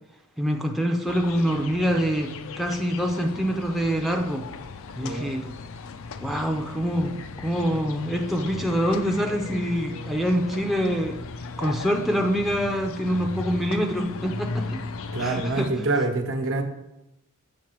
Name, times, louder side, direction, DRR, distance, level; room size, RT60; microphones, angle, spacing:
voice 1, 0.4-4.5 4.9-5.5 6.2-11.2 11.6-14.8 15.2-15.7, equal, ahead, 3 dB, 0.5 m, -25 dB
sound 1, 1.1-15.7, left 4 dB, 65° left, 0.5 m, -37 dB
voice 2, 5.0-5.3 15.1-16.6, right 2 dB, 60° right, 4 dB, 1.1 m, -26 dB
7.3 x 5.5 x 4.5 m, 0.92 s
head